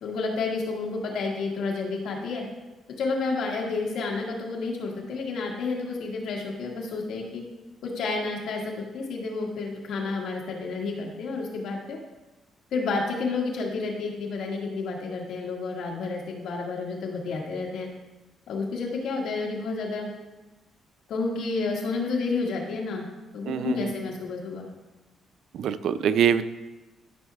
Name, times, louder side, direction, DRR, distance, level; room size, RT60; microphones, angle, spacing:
voice 1, 0.0-2.4 3.0-7.4 7.8-12.0 12.7-17.9 18.5-20.1 21.1-23.1 23.3-24.7, left 3 dB, 75° left, -2 dB, 1.9 m, -30 dB
voice 2, 23.5-23.9 25.5-26.4, right 8 dB, 75° right, 13 dB, 0.4 m, -24 dB
13.5 x 6.3 x 2.4 m, 1.1 s
cardioid pair, 90°, 0 cm